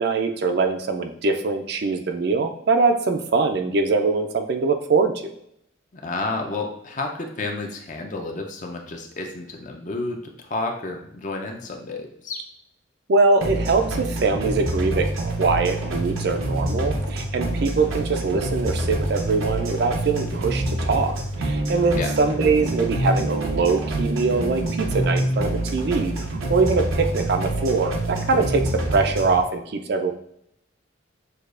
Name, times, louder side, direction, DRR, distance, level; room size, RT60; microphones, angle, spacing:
voice 1, 0.0-5.3 13.1-26.1 26.5-30.1, right 4 dB, 55° right, 6 dB, 0.4 m, -22 dB
voice 2, 5.9-12.4 22.0-22.1, left 3 dB, 40° left, 2 dB, 0.5 m, -31 dB
sound 1, 13.4-29.4, right 1 dB, 90° right, 0.8 m, -26 dB
6.5 x 2.4 x 2.5 m, 0.75 s
head